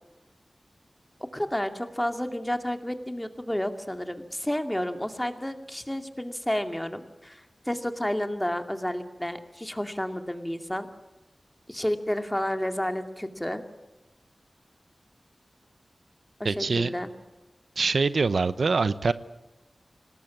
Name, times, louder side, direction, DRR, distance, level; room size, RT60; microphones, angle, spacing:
voice 1, 1.3-10.9 11.7-13.6 16.4-17.1, left 1 dB, 10° left, 7 dB, 2.4 m, -31 dB
voice 2, 16.4-16.9 17.8-19.1, right 4 dB, 80° right, 14 dB, 0.9 m, -24 dB
25.5 x 19.5 x 7.5 m, 1.1 s
wide cardioid pair, 75°, 0 cm